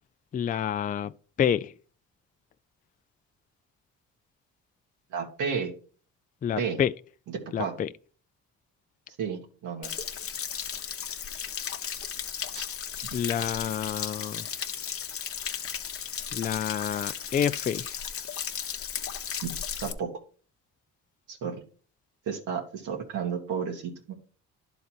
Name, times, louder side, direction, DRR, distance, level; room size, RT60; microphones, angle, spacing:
voice 1, 0.3-1.7 6.4-6.9 7.5-7.9 13.1-14.5 16.3-18.0, left 9 dB, 30° left, 0.3 m, -28 dB
voice 2, 5.1-5.7 6.6-6.8 7.6-7.7 9.2-9.9 12.5-12.6 13.4-13.5 19.4-19.5 19.8-20.1 21.3-21.6 22.2-24.1, right 6 dB, 85° right, 1.8 m, -32 dB
Stream / Splash splatter / Trickle dribble, 9.8-19.9, left 8 dB, 50° left, 0.9 m, -35 dB
11.0 x 4.0 x 4.3 m
cardioid pair, 90°, 30 cm